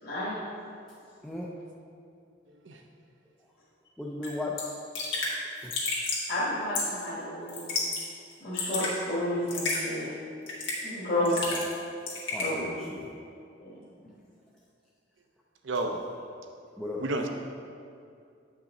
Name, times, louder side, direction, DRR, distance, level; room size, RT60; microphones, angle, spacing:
voice 1, 0.0-0.3 6.3-7.8 8.4-10.1 10.8-11.5 12.4-12.7 13.6-13.7, left 1 dB, 50° left, -9 dB, 1.6 m, -31 dB
voice 2, 2.7-2.8 15.6-15.9 17.0-17.3, right 2 dB, 75° right, 4 dB, 0.7 m, -30 dB
voice 3, 4.0-4.7 5.6-5.7 11.2-11.4 12.3-13.1 15.9-16.0 16.8-17.1, left 2 dB, 5° left, -5 dB, 0.4 m, -36 dB
Raindrop / Drip, 4.2-4.3 4.6-4.7 4.9-5.3 5.7-6.3 6.7-7.0 7.5-8.0 8.3-8.9 9.5-9.8 10.5-10.9 11.3-11.8 12.1-12.5, left 3 dB, 75° left, 1.8 m, -31 dB
8.2 x 5.7 x 3.8 m, 2.4 s
head